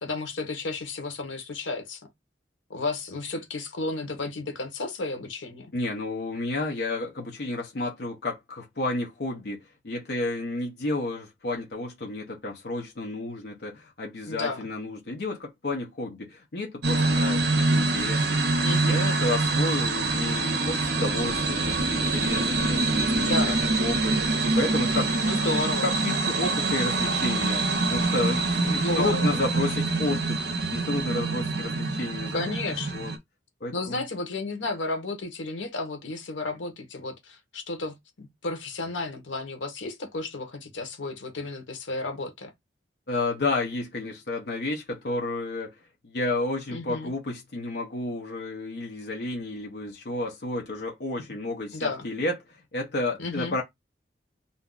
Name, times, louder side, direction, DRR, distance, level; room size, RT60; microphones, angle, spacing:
voice 1, 0.0-2.1 2.7-5.7 14.3-14.7 18.6-19.0 23.2-23.6 25.2-25.9 28.6-29.3 32.3-33.0 33.7-42.5 46.7-47.1 51.7-52.1 53.2-53.6, left 3 dB, 90° left, 0.9 m, -32 dB
voice 2, 5.7-23.6 23.8-24.2 24.4-25.1 25.4-25.5 25.8-30.4 30.7-32.6 32.9-33.1 33.6-34.0 43.1-45.7 46.0-53.6, left 2 dB, 60° left, 0.6 m, -31 dB
sound 1, 16.8-33.2, right 3 dB, 60° right, 0.6 m, -25 dB
2.6 x 2.3 x 3.6 m
head